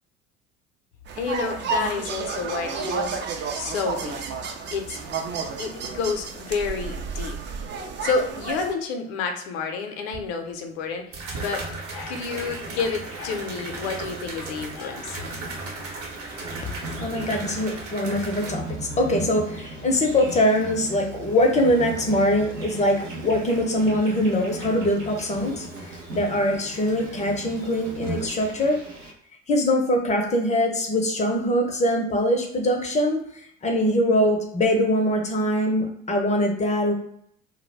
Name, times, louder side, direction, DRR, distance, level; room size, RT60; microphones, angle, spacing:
sound 1, 1.1-8.7, right 5 dB, 30° right, 0.5 m, -31 dB
voice 1, 1.2-3.2 3.5-4.2 4.7-5.0 5.6-7.4 8.0-11.6 11.9-15.3, left 5 dB, 60° left, 5 dB, 0.6 m, -29 dB
sound 2, 10.1-10.2 11.1-18.5, right 3 dB, 50° right, 0.9 m, -36 dB
Insect, 12.1-29.1, right 2 dB, 90° right, 0.6 m, -38 dB
voice 2, 17.0-28.8 29.5-33.2 33.6-36.9, left 1 dB, 20° left, 2 dB, 0.6 m, -23 dB
2.2 x 2.1 x 3.2 m, 0.70 s
figure-of-eight pair, 60°, 36 cm